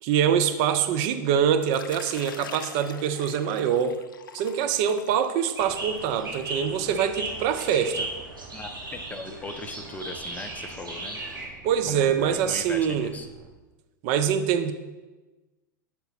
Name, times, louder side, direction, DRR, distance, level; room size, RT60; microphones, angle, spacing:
voice 1, 0.0-4.0 4.3-8.1 11.6-13.1 14.0-14.7, right 8 dB, 50° right, 9 dB, 0.5 m, -24 dB
Water / Liquid, 1.6-7.1, left 7 dB, 75° left, 0.4 m, -45 dB
sound 1, 5.6-13.5, right 5 dB, 30° right, 1.1 m, -50 dB
sound 2, 5.6-11.5, right 2 dB, 85° right, 1.4 m, -36 dB
voice 2, 8.5-11.2 11.9-13.3, left 3 dB, 15° left, 7 dB, 0.5 m, -39 dB
5.8 x 4.0 x 4.0 m, 1.2 s
figure-of-eight pair, 95°, 11 cm